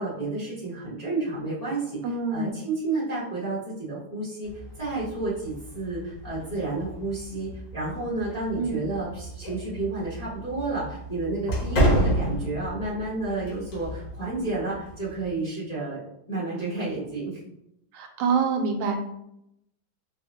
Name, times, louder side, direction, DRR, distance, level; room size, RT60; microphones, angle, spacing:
voice 1, 0.0-2.0 2.3-4.5 4.8-17.4, right 3 dB, 30° left, -10 dB, 0.7 m, -31 dB
voice 2, 2.0-2.6 8.6-8.8 17.9-19.0, right 5 dB, 85° right, 4 dB, 1.5 m, -26 dB
sound 1, 4.4-15.3, equal, 65° left, 1.6 m, -31 dB
4.5 x 2.1 x 2.8 m, 0.80 s
omnidirectional pair, 2.3 m